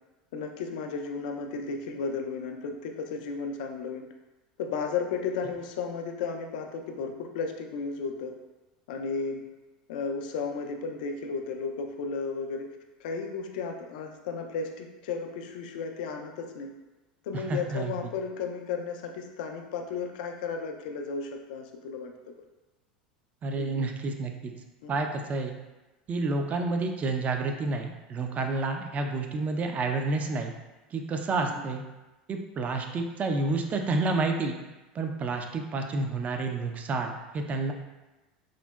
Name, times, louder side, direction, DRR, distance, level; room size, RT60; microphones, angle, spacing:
voice 1, 0.3-4.1 4.6-8.4 8.9-9.4 9.9-16.7 17.2-22.3 23.6-23.8 24.8-24.9 31.4-31.6, left 5 dB, 70° left, 4 dB, 0.3 m, -34 dB
voice 2, 17.5-17.9 23.4-24.5 24.9-25.5 26.1-30.5 30.9-31.8 32.3-34.6 34.9-37.7, right 3 dB, 30° right, 4 dB, 0.4 m, -29 dB
3.7 x 2.0 x 2.2 m, 1.1 s
hypercardioid pair, 90°, 5 cm